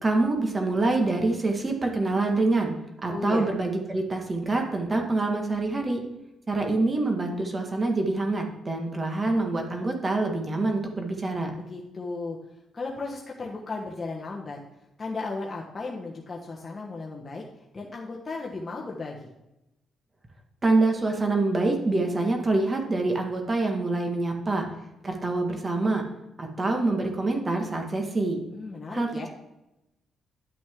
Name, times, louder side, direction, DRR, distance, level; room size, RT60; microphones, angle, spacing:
voice 1, 0.0-2.7 3.0-6.0 6.5-11.5 20.6-24.7 25.0-26.0 26.4-28.4 28.9-29.3, right 2 dB, 25° right, 3 dB, 1.6 m, -26 dB
voice 2, 3.1-3.5 11.5-12.4 12.7-14.6 15.0-17.4 17.7-19.3 28.5-29.3, left 3 dB, 25° left, -2 dB, 1.2 m, -35 dB
10.5 x 6.1 x 3.6 m, 0.92 s
cardioid pair, 90°, 0 cm